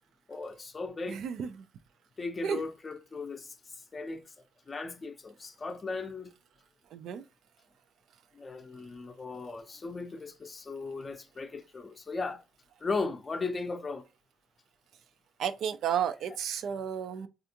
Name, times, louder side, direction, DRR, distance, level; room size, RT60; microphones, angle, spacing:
voice 1, 0.3-1.2 2.2-4.3 4.7-6.3 8.3-12.4 12.8-14.1, left 3 dB, 30° left, 0.5 m, -37 dB
voice 2, 1.1-1.7 2.4-2.6 6.9-7.2 15.4-17.3, right 8 dB, 75° right, 0.4 m, -32 dB
3.4 x 2.4 x 2.8 m
cardioid pair, 90°, 0 cm